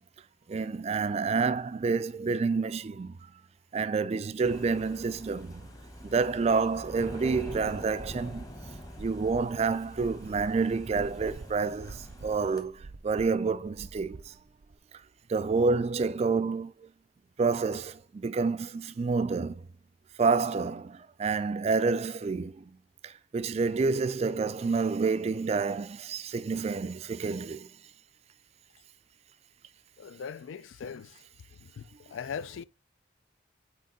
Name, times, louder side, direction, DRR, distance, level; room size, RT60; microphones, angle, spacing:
voice 1, 0.5-3.2 3.7-5.7 6.0-8.5 9.0-14.3 15.3-16.7 17.4-19.7 20.2-22.6 23.0-27.7, right 4 dB, 35° right, 0.3 m, -28 dB
sound 1, 4.4-12.6, equal, 20° left, 1.1 m, -45 dB
sound 2, 7.3-14.8, right 3 dB, 85° right, 0.6 m, -48 dB
voice 2, 30.0-31.2 31.6-32.6, left 6 dB, 85° left, 0.4 m, -40 dB
6.4 x 4.5 x 4.0 m
head